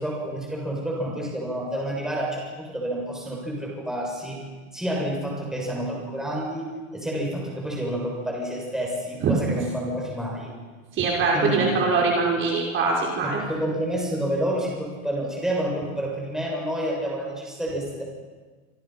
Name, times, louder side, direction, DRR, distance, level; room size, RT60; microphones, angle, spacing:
voice 1, 0.0-4.4 4.7-6.7 6.9-10.5 11.3-12.0 13.2-18.0, right 1 dB, ahead, -3 dB, 7.0 m, -29 dB
voice 2, 11.0-13.4, right 4 dB, 30° right, -1 dB, 5.4 m, -22 dB
28.0 x 26.5 x 6.0 m, 1.4 s
supercardioid pair, 165°, 40 cm